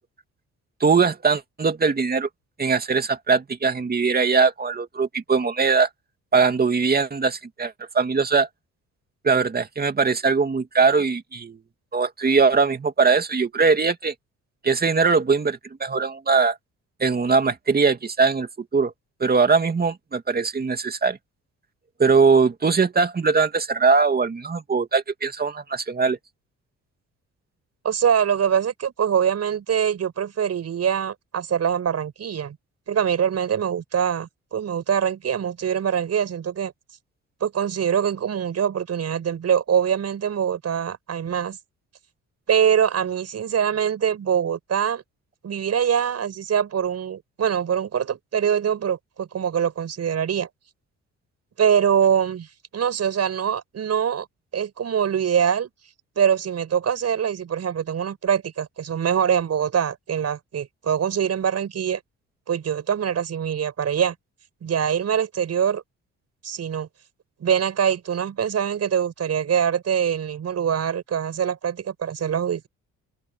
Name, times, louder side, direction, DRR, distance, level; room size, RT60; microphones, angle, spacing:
voice 1, 0.8-2.3 2.6-5.9 6.3-8.5 9.2-11.6 11.9-14.1 14.6-16.6 17.0-18.9 19.2-21.2 22.0-26.2, right 4 dB, 30° right, 2.5 m, -21 dB
voice 2, 27.8-32.6 32.9-36.7 37.4-41.6 42.5-45.0 45.4-50.5 51.6-52.5 52.7-54.3 54.5-55.7 56.2-62.0 62.5-64.1 64.6-65.8 66.4-66.9 67.4-72.7, right 8 dB, 55° right, 7.5 m, -23 dB
open air
cardioid pair, 90°, 30 cm